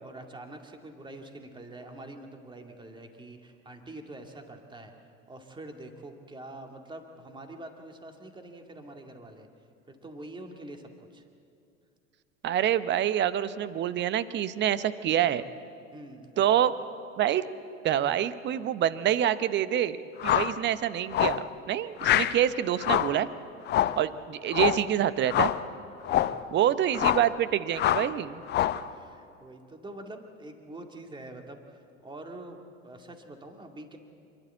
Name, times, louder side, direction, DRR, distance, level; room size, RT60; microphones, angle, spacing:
voice 1, 0.0-4.9 5.3-9.5 9.9-11.2 15.9-16.3 26.1-26.6 28.7-34.0, right 1 dB, 10° right, 4 dB, 2.2 m, -45 dB
voice 2, 12.4-15.4 16.4-16.7 17.2-17.5 17.8-20.0 20.2-23.3 24.0-25.5 26.5-28.4, right 10 dB, 25° right, 15 dB, 0.8 m, -26 dB
sound 1, 20.2-20.6 21.1-21.5 22.0-22.4 22.8-23.2 23.7-24.0 24.5-24.9 25.3-25.6 26.0-26.4 26.9-27.3 27.8-28.1 28.5-28.9, left 12 dB, 25° left, 0.7 m, -25 dB
27.0 x 12.0 x 8.2 m, 2.4 s
figure-of-eight pair, 85°, 39 cm